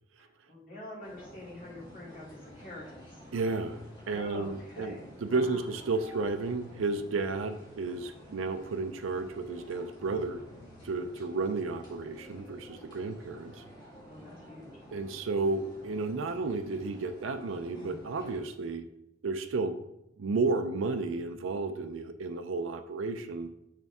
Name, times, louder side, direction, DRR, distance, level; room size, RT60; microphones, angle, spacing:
voice 1, 0.5-3.2 4.1-5.7 14.0-14.7, left 1 dB, 45° left, -5 dB, 2.8 m, -45 dB
sound 1, 1.0-18.4, equal, 20° left, 2.4 m, -51 dB
voice 2, 3.3-3.8 4.1-10.4 10.8-13.6 14.9-18.8 19.2-19.7 20.2-23.5, right 3 dB, 85° right, 7 dB, 0.5 m, -32 dB
6.7 x 6.2 x 3.5 m, 0.87 s
head